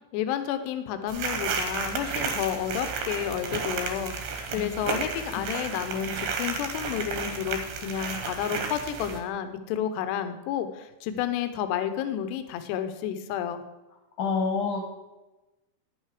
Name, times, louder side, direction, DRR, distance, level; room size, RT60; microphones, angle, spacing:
voice 1, 0.1-13.6, left 9 dB, 80° left, 10 dB, 2.8 m, -31 dB
sound 1, 1.1-9.2, right 5 dB, 70° right, 3.1 m, -32 dB
voice 2, 14.2-14.9, left 4 dB, 60° left, 1 dB, 2.3 m, -27 dB
11.0 x 8.9 x 5.0 m, 1.1 s
omnidirectional pair, 5.3 m